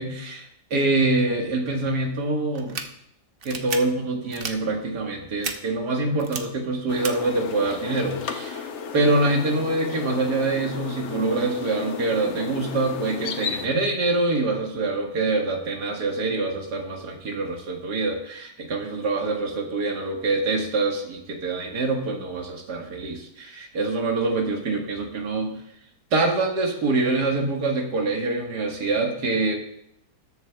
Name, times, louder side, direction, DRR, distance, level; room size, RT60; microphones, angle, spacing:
voice 1, 0.0-2.8 3.5-25.6 26.1-29.6, right 2 dB, 75° right, 1 dB, 2.0 m, -25 dB
sound 1, 2.6-2.8 3.4-3.8 4.3-4.5 5.4-5.5 6.2-6.4 7.0-7.1, right 5 dB, 50° right, 0.7 m, -31 dB
sound 2, 6.9-13.7, left 6 dB, 55° left, 0.9 m, -34 dB
20.0 x 6.9 x 2.3 m, 0.76 s
omnidirectional pair, 1.8 m